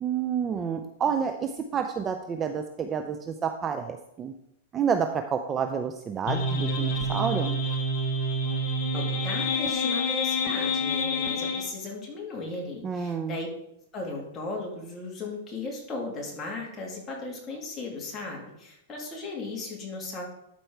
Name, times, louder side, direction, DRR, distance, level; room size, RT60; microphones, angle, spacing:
voice 1, 0.0-4.3 4.7-7.6 12.8-13.3, right 7 dB, 20° right, 6 dB, 0.5 m, -29 dB
sound 1, 6.3-11.7, left 1 dB, 40° left, 1.0 m, -27 dB
voice 2, 8.9-13.5 13.9-20.2, left 3 dB, 20° left, -2 dB, 2.5 m, -36 dB
12.5 x 4.6 x 4.5 m, 0.78 s
supercardioid pair, 155°, 0 cm